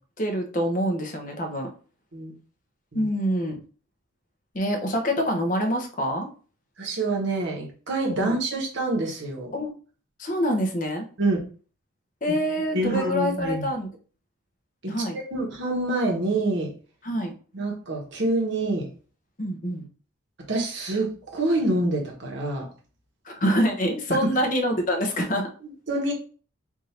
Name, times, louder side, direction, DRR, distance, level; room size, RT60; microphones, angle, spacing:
voice 1, 0.2-1.7 2.9-3.6 4.5-6.3 8.2-8.4 9.5-9.7 10.2-11.1 12.2-13.9 14.9-15.2 17.0-17.3 19.4-19.9 23.2-25.5, equal, 40° left, 3 dB, 0.8 m, -26 dB
voice 2, 6.8-9.5 11.2-11.4 12.7-13.7 14.8-16.7 17.5-18.9 20.5-22.7 24.1-24.2 25.9-26.1, right 2 dB, 55° right, -1 dB, 1.2 m, -26 dB
3.6 x 2.6 x 4.2 m, 0.39 s
head